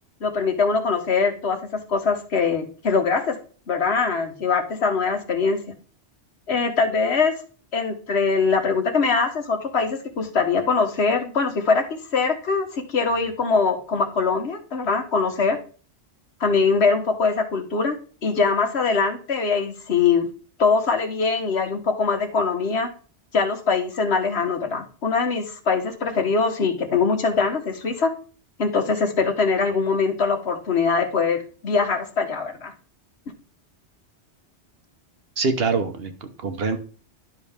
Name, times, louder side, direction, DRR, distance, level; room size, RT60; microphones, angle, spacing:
voice 1, 0.2-3.4 3.7-5.6 6.5-7.3 7.7-15.6 16.4-20.3 20.6-22.9 23.3-28.1 28.6-32.7, left 4 dB, 65° left, 5 dB, 1.4 m, -22 dB
voice 2, 35.4-36.8, right 4 dB, 60° right, 7 dB, 1.1 m, -24 dB
11.0 x 5.6 x 3.5 m, 0.39 s
omnidirectional pair, 1.2 m